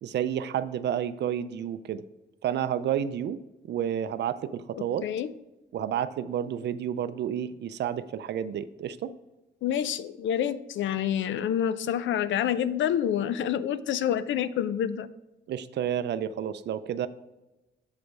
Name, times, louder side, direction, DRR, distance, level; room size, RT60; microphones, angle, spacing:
voice 1, 0.0-2.0 2.4-3.4 3.7-5.0 5.7-9.1 15.5-17.1, right 9 dB, 65° right, 13 dB, 0.4 m, -30 dB
voice 2, 9.6-15.1, left 9 dB, 80° left, 15 dB, 0.4 m, -27 dB
7.4 x 5.1 x 4.7 m, 1.0 s
wide cardioid pair, 160°, 19 cm